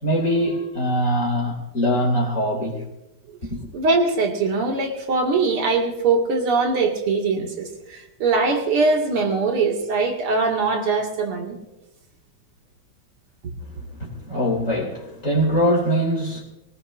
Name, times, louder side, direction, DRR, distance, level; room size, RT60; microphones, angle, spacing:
voice 1, 0.0-2.8 3.4-3.7 13.6-16.4, equal, 35° left, 3.3 m, -23 dB
voice 2, 3.7-11.5, right 3 dB, 85° right, 3.1 m, -22 dB
23.0 x 17.5 x 2.6 m
omnidirectional pair, 2.3 m